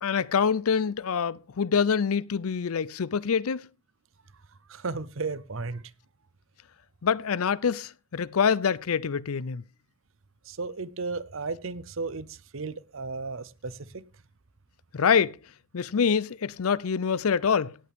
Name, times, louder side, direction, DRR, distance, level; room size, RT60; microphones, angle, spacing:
voice 1, 0.0-3.6 7.0-9.6 14.9-15.4 15.7-17.8, left 6 dB, 80° left, 0.5 m, -25 dB
voice 2, 4.7-5.9 10.4-14.1, right 4 dB, 65° right, 0.8 m, -34 dB
17.5 x 8.4 x 3.6 m
head